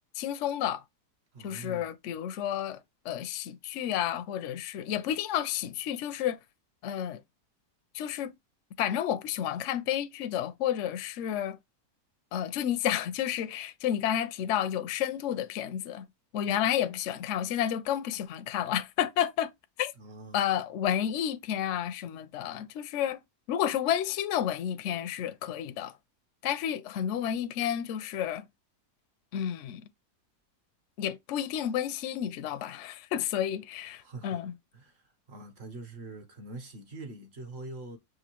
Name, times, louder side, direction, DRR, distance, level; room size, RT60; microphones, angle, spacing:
voice 1, 0.1-0.8 1.4-6.4 6.8-7.2 7.9-8.4 8.8-11.6 12.3-16.1 16.3-19.5 19.8-19.9 20.3-23.2 23.5-26.0 26.4-28.5 29.3-29.9 31.0-34.5, left 10 dB, 70° left, 0.7 m, -31 dB
voice 2, 1.3-1.9 20.0-20.4 34.0-34.4 34.7-35.0 35.3-38.0, right 2 dB, 45° right, 1.0 m, -44 dB
6.1 x 2.6 x 2.9 m
omnidirectional pair, 1.7 m